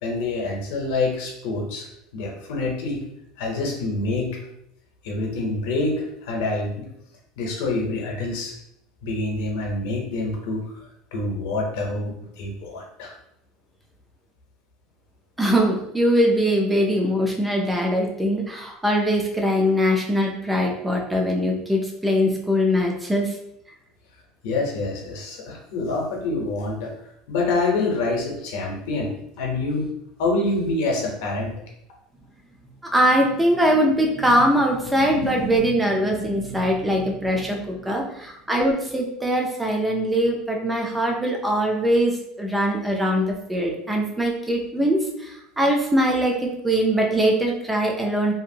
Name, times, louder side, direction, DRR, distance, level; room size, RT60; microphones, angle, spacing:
voice 1, 0.0-1.9 2.1-3.0 3.4-4.3 5.0-6.7 7.4-8.5 9.0-10.6 11.1-13.1 24.4-26.9 27.3-29.8 30.2-31.5, left 2 dB, 65° left, 0 dB, 0.8 m, -26 dB
voice 2, 15.4-23.4 32.8-48.3, equal, 5° right, 0 dB, 0.4 m, -22 dB
2.7 x 2.5 x 2.7 m, 0.79 s
cardioid pair, 175°, 0 cm